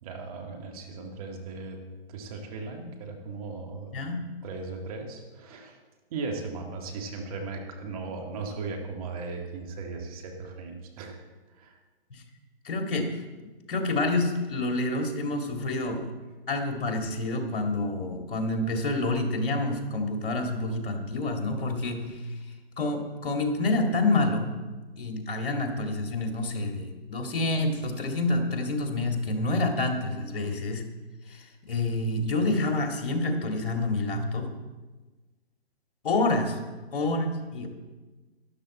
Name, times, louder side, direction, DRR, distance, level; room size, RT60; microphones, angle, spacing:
voice 1, 0.0-1.8 2.1-3.9 4.4-5.8 6.1-11.2 11.5-11.7, right 4 dB, 35° right, 2 dB, 1.9 m, -37 dB
voice 2, 3.9-4.2 12.1-12.2 12.6-13.1 13.7-16.1 16.5-22.3 22.8-24.5 25.0-30.9 31.3-34.5 36.0-36.6 36.9-37.7, left 2 dB, 55° left, 3 dB, 2.2 m, -28 dB
12.5 x 11.5 x 4.3 m, 1.2 s
hypercardioid pair, 145°, 32 cm